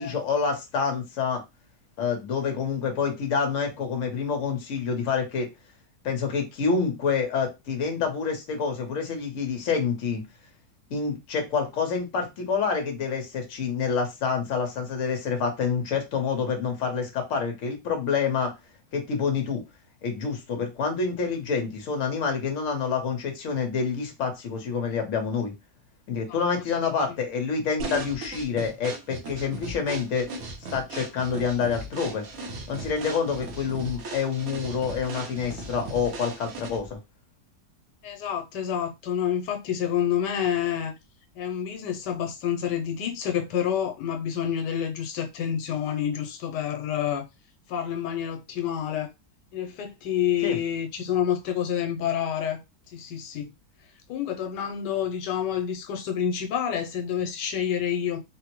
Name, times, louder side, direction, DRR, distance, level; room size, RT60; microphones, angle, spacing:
voice 1, 0.0-1.4 2.0-5.5 6.0-10.2 10.9-18.5 18.9-19.6 20.0-25.5 26.1-30.3 30.7-32.2 32.7-37.0 50.4-50.6, left 5 dB, 55° left, 1.1 m, -27 dB
sound 1, 27.8-36.9, right 2 dB, 65° right, 1.1 m, -37 dB
voice 2, 38.0-40.9 41.3-47.2 47.7-49.1 49.5-52.6 52.9-53.5 54.1-58.2, left 9 dB, 90° left, 1.2 m, -28 dB
3.6 x 2.0 x 2.9 m
omnidirectional pair, 1.8 m